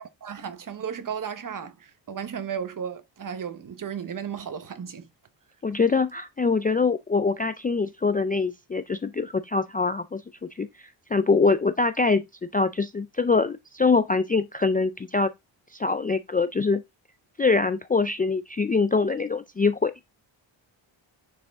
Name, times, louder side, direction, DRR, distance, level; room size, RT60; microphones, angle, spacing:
voice 1, 0.0-5.1, right 7 dB, 40° right, 1.0 m, -34 dB
voice 2, 5.6-10.2 10.6-10.7 11.1-15.3 15.7-16.8 17.4-19.9, left 4 dB, 20° left, 0.3 m, -24 dB
9.9 x 4.8 x 3.6 m
wide cardioid pair, 150°, 48 cm